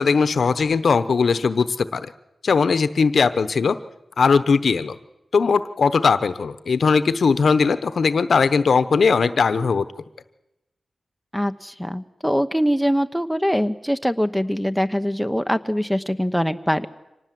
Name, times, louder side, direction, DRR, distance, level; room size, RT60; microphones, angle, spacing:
voice 1, 0.0-2.1 2.4-3.8 4.2-5.0 5.3-9.9, left 5 dB, 75° left, 13 dB, 0.9 m, -19 dB
voice 2, 11.3-16.9, equal, ahead, 11 dB, 1.0 m, -23 dB
25.5 x 19.0 x 7.7 m, 0.96 s
wide cardioid pair, 75°, 0 cm